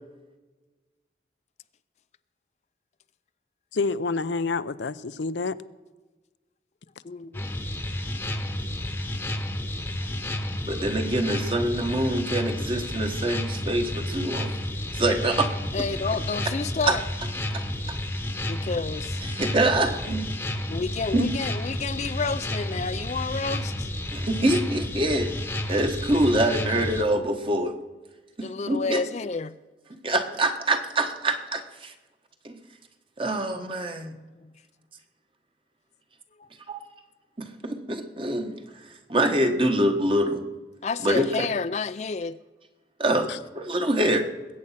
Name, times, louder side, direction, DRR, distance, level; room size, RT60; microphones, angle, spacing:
voice 1, 3.7-5.5 13.8-13.9 43.3-43.4, left 4 dB, 90° left, 0.6 m, -28 dB
voice 2, 7.0-7.5 10.1-10.2 15.7-17.0 18.5-19.2 20.7-23.9 28.4-29.5 34.4-34.5 36.4-36.5 40.8-42.4, left 4 dB, 40° left, 0.4 m, -30 dB
sound 1, 7.3-27.0, left 1 dB, 10° left, 1.0 m, -31 dB
voice 3, 10.7-14.6 14.9-15.5 16.9-17.0 17.5-18.0 19.4-20.3 21.1-21.3 24.1-25.3 25.7-27.7 28.4-29.0 30.0-31.9 32.4-32.6 33.2-34.1 36.7-36.8 37.6-38.5 39.1-40.4 41.0-41.3 43.0-43.3 43.5-44.3, right 1 dB, 30° right, 1.3 m, -25 dB
20.5 x 8.7 x 5.8 m
head